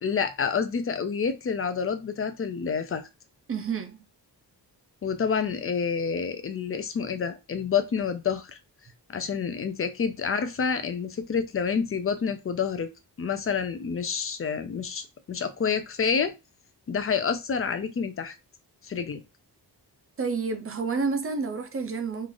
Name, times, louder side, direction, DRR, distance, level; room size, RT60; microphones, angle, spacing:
voice 1, 0.0-3.1 5.0-8.6 9.1-12.9 13.2-16.3 16.9-18.4 18.8-19.2, left 6 dB, 35° left, 0.4 m, -28 dB
voice 2, 3.5-4.0 20.2-22.3, right 4 dB, 35° right, 0.5 m, -29 dB
3.2 x 2.4 x 3.8 m
wide cardioid pair, 165°, 40 cm